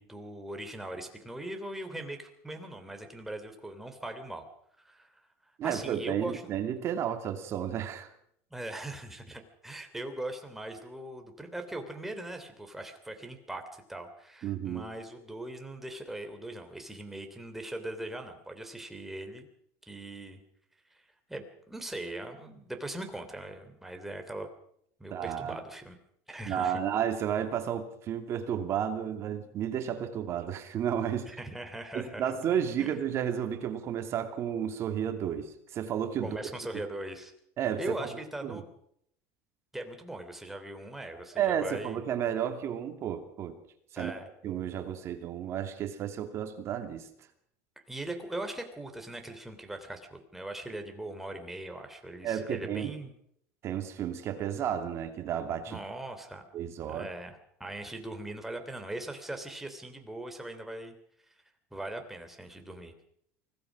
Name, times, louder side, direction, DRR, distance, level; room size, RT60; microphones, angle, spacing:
voice 1, 0.0-4.5 4.8-5.1 5.6-6.4 8.5-19.5 19.9-20.4 20.9-21.0 21.3-24.5 25.0-26.0 26.3-26.8 31.3-32.3 32.8-32.9 36.2-37.3 37.8-38.6 39.7-42.0 44.0-44.3 47.9-53.1 55.7-56.4 56.9-60.9 61.7-62.9, right 1 dB, 5° right, 5 dB, 3.2 m, -40 dB
voice 2, 5.6-8.1 14.4-14.9 25.1-25.6 26.4-31.3 31.9-36.4 37.6-38.0 38.4-38.6 41.4-43.6 43.9-44.1 44.4-47.0 52.2-52.9 53.6-55.8 56.5-57.1, right 9 dB, 35° right, 6 dB, 2.8 m, -32 dB
25.0 x 17.5 x 6.2 m, 0.70 s
supercardioid pair, 150°, 7 cm